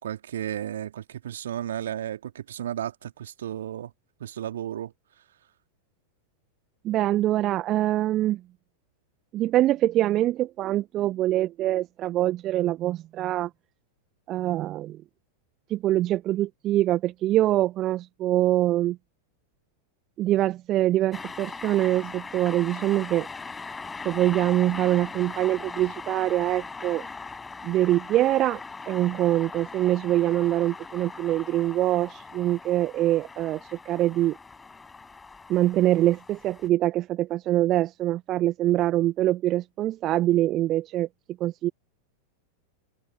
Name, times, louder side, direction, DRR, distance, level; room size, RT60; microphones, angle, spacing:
voice 1, 0.0-3.9 4.2-4.9, right 10 dB, 60° right, 3.0 m, -33 dB
voice 2, 6.8-8.4 9.3-13.5 14.3-15.0 15.7-19.0 20.2-23.3 24.0-27.1 27.6-28.6 28.9-34.4 35.5-41.1 41.4-41.7, right 14 dB, 35° right, 1.4 m, -24 dB
sound 1, 21.1-36.7, left 4 dB, 10° left, 6.2 m, -40 dB
figure-of-eight pair, 90°, 0 cm